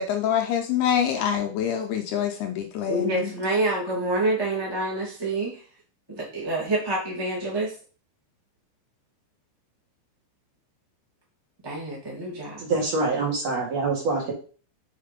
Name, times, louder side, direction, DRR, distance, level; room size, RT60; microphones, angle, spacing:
voice 1, 0.0-3.3, left 9 dB, 80° left, 4 dB, 2.5 m, -26 dB
voice 2, 2.9-5.6 6.1-7.7 11.6-12.6, right 2 dB, 10° right, -4 dB, 1.2 m, -27 dB
voice 3, 12.6-14.3, right 3 dB, 50° right, -2 dB, 2.2 m, -25 dB
6.6 x 4.8 x 5.2 m, 0.39 s
omnidirectional pair, 5.2 m